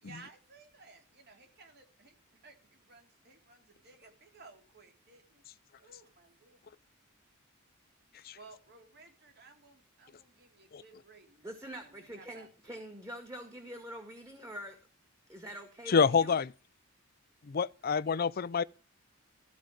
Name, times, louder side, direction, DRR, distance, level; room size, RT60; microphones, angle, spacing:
voice 1, 0.0-5.4 5.8-6.7 8.3-12.8, right 3 dB, 50° right, 2.7 m, -57 dB
voice 2, 11.4-14.8 15.3-16.4, equal, 15° right, 1.8 m, -45 dB
voice 3, 15.9-16.5 17.4-18.6, left 6 dB, 45° left, 0.5 m, -27 dB
13.5 x 5.2 x 7.4 m
head